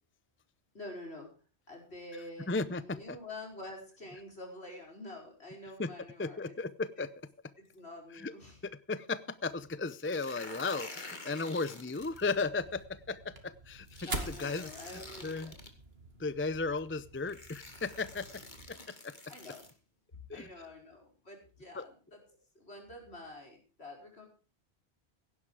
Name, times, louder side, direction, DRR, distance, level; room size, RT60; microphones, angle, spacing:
voice 1, 0.7-1.3 1.7-6.5 7.0-7.1 7.6-8.6 14.0-15.6 19.3-19.6 20.3-22.2 22.6-24.3, left 1 dB, 70° left, 1 dB, 5.6 m, -47 dB
voice 2, 2.5-3.2 5.8-5.9 6.2-7.1 8.1-8.3 8.6-13.9 14.3-15.5 16.2-18.4 19.0-19.1 20.3-20.5 21.7-21.8, left 3 dB, 15° left, 15 dB, 0.5 m, -35 dB
sound 1, 9.9-12.4 13.9-15.7 16.7-16.8 17.3-19.7, left 2 dB, 45° left, 2.4 m, -48 dB
sound 2, 12.0-18.7, right 2 dB, 65° right, 2.5 m, -46 dB
16.5 x 11.0 x 4.9 m, 0.36 s
omnidirectional pair, 1.1 m